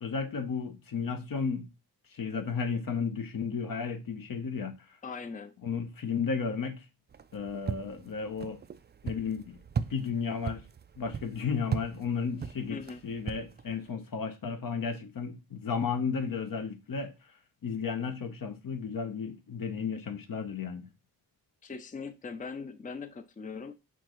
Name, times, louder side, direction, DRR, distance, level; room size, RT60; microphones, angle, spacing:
voice 1, 0.0-1.7 2.1-4.8 5.6-6.8 7.3-8.6 9.0-9.6 9.9-10.6 11.0-17.1 17.6-20.9, left 5 dB, 60° left, 0.9 m, -33 dB
voice 2, 5.0-5.5 12.7-13.0 21.6-23.7, left 5 dB, 20° left, 0.5 m, -40 dB
sound 1, 7.1-13.9, right 6 dB, 30° right, 0.4 m, -38 dB
6.0 x 2.5 x 3.0 m
cardioid pair, 45°, 39 cm